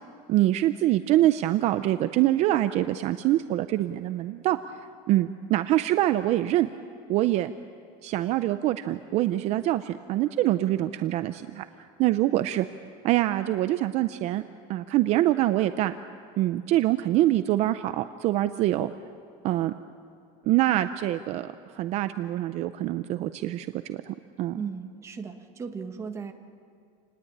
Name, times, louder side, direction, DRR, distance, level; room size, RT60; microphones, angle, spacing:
voice 1, 0.3-4.6 5.1-6.7 7.1-7.5 8.0-11.6 12.0-12.7 13.0-14.4 14.7-15.9 16.4-18.9 19.4-19.7 20.5-24.6, right 14 dB, 40° right, 11 dB, 0.6 m, -25 dB
voice 2, 24.5-26.3, right 5 dB, 15° right, 5 dB, 1.3 m, -36 dB
28.5 x 19.5 x 8.7 m, 2.4 s
cardioid pair, 175°, 18 cm